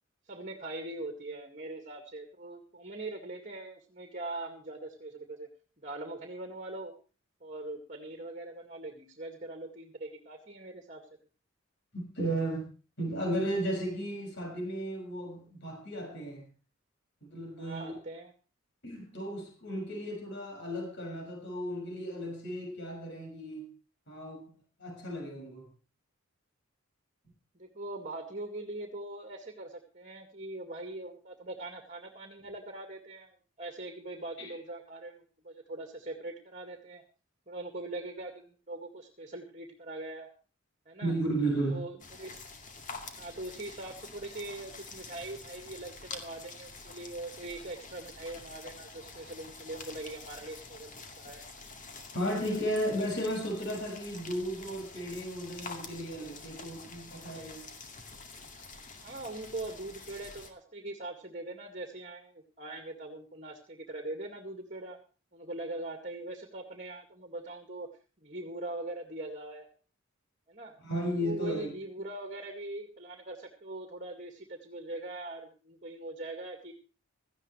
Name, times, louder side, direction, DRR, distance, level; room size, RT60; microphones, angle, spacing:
voice 1, 0.3-5.5 5.8-6.9 7.4-11.0 17.6-18.3 27.5-37.0 37.5-40.3 40.9-41.1 41.6-42.4 43.2-50.9 51.2-51.5 52.5-52.6 59.0-65.0 65.3-67.9 68.2-69.7 70.5-70.8 71.2-76.7, right 2 dB, 35° right, 2.1 m, -42 dB
voice 2, 11.9-12.7 13.0-16.5 17.2-18.0 18.8-23.7 24.1-25.7 34.4-34.5 41.0-41.9 52.1-57.7 70.8-71.7, right 1 dB, 55° left, 6.2 m, -34 dB
sound 1, 42.0-60.5, left 4 dB, 35° left, 2.3 m, -47 dB
17.5 x 14.5 x 3.3 m
head